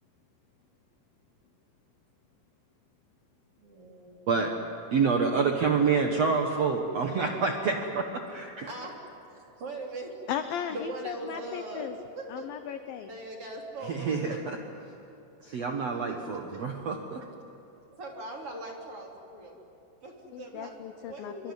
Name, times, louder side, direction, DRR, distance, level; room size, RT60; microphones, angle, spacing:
voice 1, 3.6-4.5 8.7-9.0 9.3-10.1 10.7-11.9 12.2-12.5 13.0-14.4 15.9-16.6 17.9-19.6 20.0-20.7 21.0-21.5, right 2 dB, 35° right, 0 dB, 3.7 m, -41 dB
voice 2, 4.9-8.7 13.9-14.6 15.4-17.2, right 5 dB, 85° right, 3 dB, 1.4 m, -27 dB
voice 3, 10.3-12.0 12.3-13.1 20.3-21.5, left 9 dB, 90° left, 9 dB, 2.0 m, -36 dB
25.0 x 24.5 x 9.5 m, 2.9 s
omnidirectional pair, 5.3 m